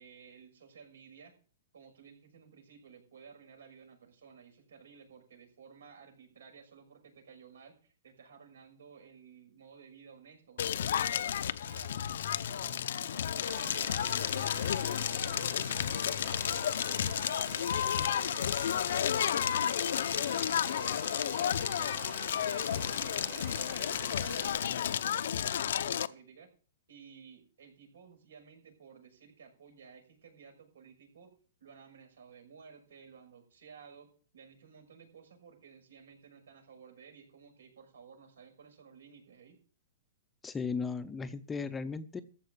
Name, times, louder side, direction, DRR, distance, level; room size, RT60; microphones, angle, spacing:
voice 1, 0.0-1.4 1.7-11.2 11.6-12.0 12.4-15.7 16.0-19.4 19.8-22.9 23.3-26.5 26.9-31.3 31.6-39.6, right 6 dB, 90° right, 4 dB, 6.1 m, -55 dB
Crackle, 10.6-26.1, left 9 dB, 65° left, 0.6 m, -32 dB
Domestic sounds home sounds, 13.5-24.5, right 10 dB, 40° right, 1.9 m, -48 dB
voice 2, 40.4-42.2, left 5 dB, 10° left, 12 dB, 0.6 m, -36 dB
14.5 x 5.5 x 8.6 m, 0.40 s
hypercardioid pair, 165°, 0 cm